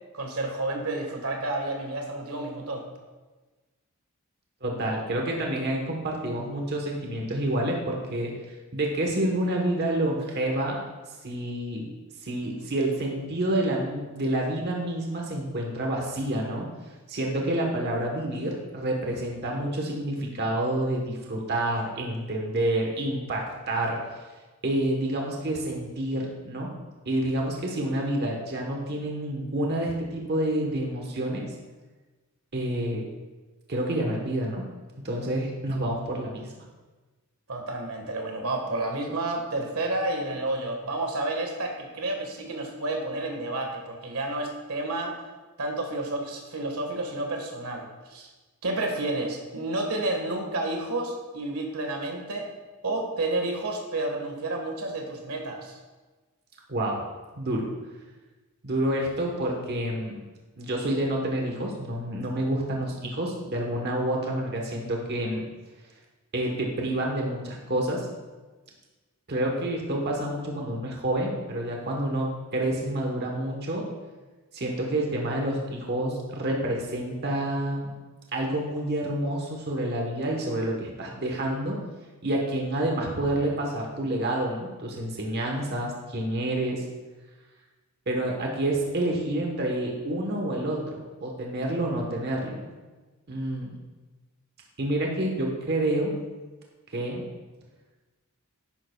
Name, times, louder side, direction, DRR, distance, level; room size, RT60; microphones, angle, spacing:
voice 1, 0.1-2.8 37.5-45.1 45.6-48.3 48.6-52.5 52.8-55.8, right 2 dB, 85° right, 2 dB, 1.6 m, -30 dB
voice 2, 4.6-8.3 8.7-10.8 11.2-11.9 12.2-16.7 17.1-24.0 24.6-26.7 27.0-31.5 32.5-33.1 33.7-34.6 35.0-36.5 56.7-57.0 57.4-57.7 58.6-60.2 60.6-65.4 66.3-68.1 69.3-73.9 74.5-77.9 78.3-81.8 82.2-86.8 88.1-92.6 93.3-93.7 94.8-96.1 96.9-97.2, right 1 dB, 50° right, 0 dB, 1.2 m, -28 dB
10.5 x 10.5 x 2.3 m, 1.2 s
head